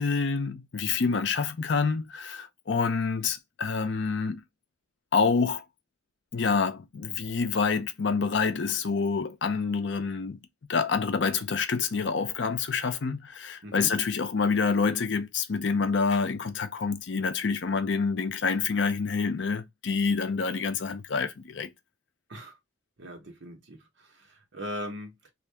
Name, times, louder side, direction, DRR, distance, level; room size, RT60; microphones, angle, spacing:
voice 1, 0.0-4.4 5.1-5.6 6.3-10.4 10.7-21.7, left 5 dB, 65° left, 0.5 m, -27 dB
voice 2, 13.6-13.9 22.3-22.6 23.0-25.3, equal, 65° right, 1.0 m, -40 dB
2.7 x 2.4 x 3.3 m
head